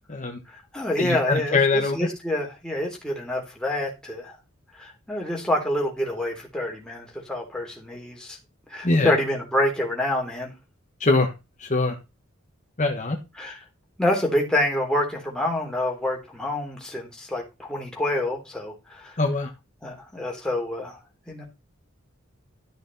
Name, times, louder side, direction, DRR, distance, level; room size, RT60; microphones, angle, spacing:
voice 1, 0.1-0.4 1.0-2.0 8.8-9.1 11.0-11.3 11.6-11.9 12.8-13.2 19.2-19.5, left 3 dB, 35° left, 1.4 m, -22 dB
voice 2, 0.7-4.4 4.8-8.4 8.7-10.5 13.4-13.6 14.0-19.2 19.8-21.0 21.3-21.5, left 1 dB, 5° left, 3.3 m, -27 dB
13.0 x 6.4 x 4.1 m
head